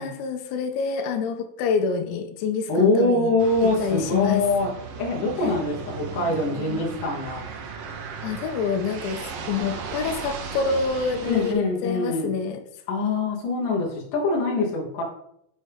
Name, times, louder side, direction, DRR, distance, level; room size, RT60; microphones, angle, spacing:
voice 1, 0.0-3.3 3.6-4.4 8.2-12.6, left 5 dB, 80° left, 7 dB, 2.7 m, -27 dB
voice 2, 2.7-4.7 5.0-7.4 11.2-12.3 12.9-15.0, left 2 dB, 65° left, -4 dB, 2.3 m, -24 dB
sound 1, 3.4-11.5, right 5 dB, 80° right, 1.9 m, -36 dB
7.0 x 6.3 x 3.5 m, 0.75 s
omnidirectional pair, 5.3 m